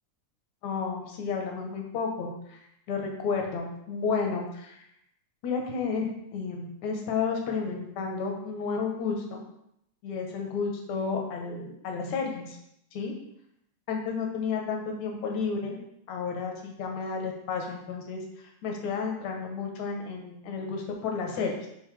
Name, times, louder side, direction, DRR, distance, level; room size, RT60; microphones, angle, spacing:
voice 1, 0.6-2.6 2.9-4.8 5.4-9.4 10.0-12.6 12.9-13.1 13.9-15.8 16.1-21.7, left 5 dB, 75° left, 1 dB, 2.4 m, -32 dB
10.5 x 4.0 x 3.4 m, 0.76 s
omnidirectional pair, 3.5 m